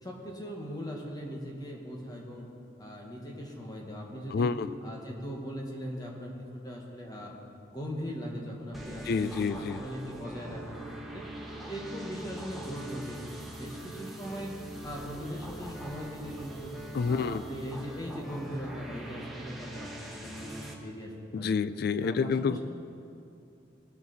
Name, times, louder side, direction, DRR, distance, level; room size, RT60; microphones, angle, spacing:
voice 1, 0.0-2.5 2.8-4.5 4.8-7.3 7.7-10.8 11.1-11.2 11.6-13.2 13.6-14.5 14.8-16.7 17.1-21.6 22.0-22.6, equal, 20° left, -1 dB, 1.4 m, -40 dB
voice 2, 4.3-4.7 9.1-9.8 16.9-17.4 21.3-22.6, left 5 dB, 55° left, 14 dB, 0.3 m, -28 dB
sound 1, 8.7-20.7, right 1 dB, ahead, 1.1 m, -42 dB
18.5 x 7.1 x 4.1 m, 2.6 s
head